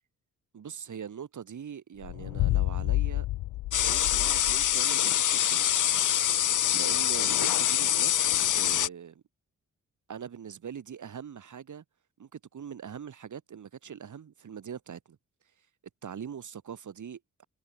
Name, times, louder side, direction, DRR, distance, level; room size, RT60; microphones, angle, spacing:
voice 1, 0.5-3.3 3.9-5.6 6.7-8.1 8.5-9.2 10.1-11.8 12.2-15.2 16.0-17.5, right 8 dB, 65° right, 7.2 m, -42 dB
sound 1, 2.0-4.8, left 17 dB, 90° left, 0.6 m, -30 dB
sound 2, 3.7-8.9, left 11 dB, 70° left, 1.1 m, -25 dB
cardioid pair, 65°, 32 cm